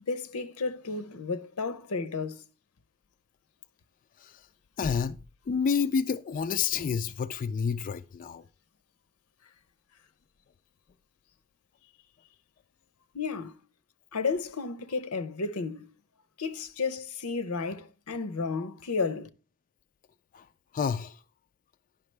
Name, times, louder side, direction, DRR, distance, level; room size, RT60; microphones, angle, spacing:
voice 1, 0.1-2.4 13.1-13.5 14.1-15.9 16.4-19.3, left 4 dB, 85° left, 0.7 m, -32 dB
voice 2, 4.8-5.2 5.5-8.4 20.3-20.4 20.7-21.2, left 6 dB, 40° left, 0.3 m, -29 dB
10.5 x 5.8 x 3.3 m
head